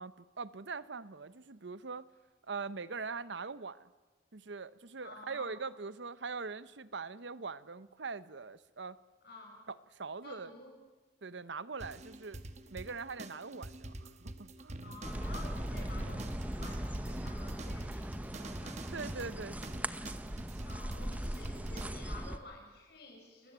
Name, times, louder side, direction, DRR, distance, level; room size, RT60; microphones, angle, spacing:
voice 1, 0.0-2.1 2.5-3.9 4.3-9.0 9.7-10.5 11.2-12.4 12.7-14.8 18.9-19.9, right 4 dB, 75° right, 16 dB, 0.9 m, -42 dB
voice 2, 5.0-5.5 9.2-9.6 10.2-10.8 14.8-18.8 20.6-23.5, left 2 dB, 60° left, 2 dB, 6.7 m, -51 dB
sound 1, 11.8-21.9, right 2 dB, 40° right, 1.2 m, -46 dB
sound 2, 15.0-22.4, right 1 dB, 10° right, 0.7 m, -39 dB
29.5 x 14.5 x 9.2 m, 1.3 s
head